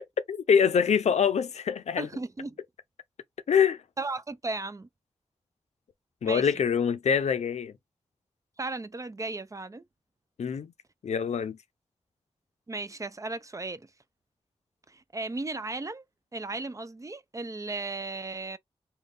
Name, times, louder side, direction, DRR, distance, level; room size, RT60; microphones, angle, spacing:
voice 1, 0.3-2.1 3.5-3.8 6.2-7.7 10.4-10.7 11.0-11.6, left 7 dB, 90° left, 0.5 m, -24 dB
voice 2, 2.0-2.6 4.0-4.9 6.2-6.6 8.6-9.8 12.7-13.9 14.9-16.0 16.3-18.6, right 3 dB, 30° right, 0.5 m, -35 dB
3.4 x 2.3 x 3.8 m
cardioid pair, 60°, 11 cm